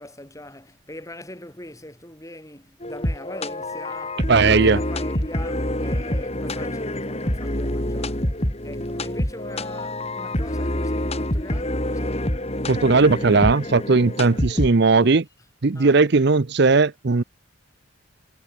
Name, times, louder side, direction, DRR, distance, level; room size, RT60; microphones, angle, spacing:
voice 1, 0.0-12.3 15.7-16.0, left 1 dB, 15° left, 6.1 m, -42 dB
sound 1, 2.8-15.1, left 1 dB, 30° left, 3.7 m, -27 dB
voice 2, 4.3-4.8 12.7-15.2 15.6-17.2, right 4 dB, 55° right, 0.7 m, -17 dB
head